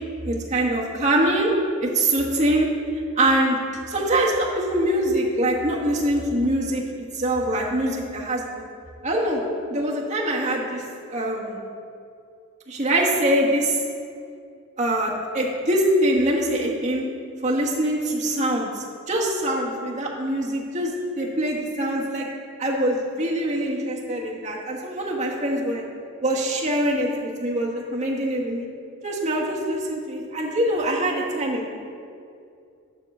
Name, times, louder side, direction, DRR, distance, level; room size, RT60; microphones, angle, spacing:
voice 1, 0.2-1.5 1.8-2.7 3.2-3.6 3.9-6.8 7.1-8.6 9.0-9.4 9.7-10.8 11.1-11.6 12.7-13.8 14.8-17.0 17.4-22.3 22.6-25.8 26.2-28.7 29.0-31.7, right 1 dB, 35° right, -3 dB, 1.4 m, -23 dB
9.6 x 3.8 x 7.1 m, 2.4 s
head